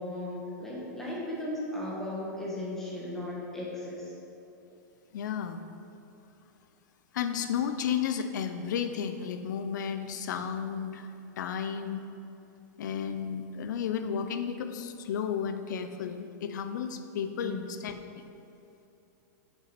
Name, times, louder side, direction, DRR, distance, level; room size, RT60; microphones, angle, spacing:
voice 1, 0.0-4.1 17.4-17.6, left 1 dB, 5° left, -6 dB, 1.5 m, -36 dB
voice 2, 5.1-5.6 7.1-11.1 11.4-12.0 12.8-17.9, left 7 dB, 75° left, 8 dB, 0.7 m, -33 dB
6.8 x 5.7 x 5.9 m, 2.8 s
supercardioid pair, 150°, 10 cm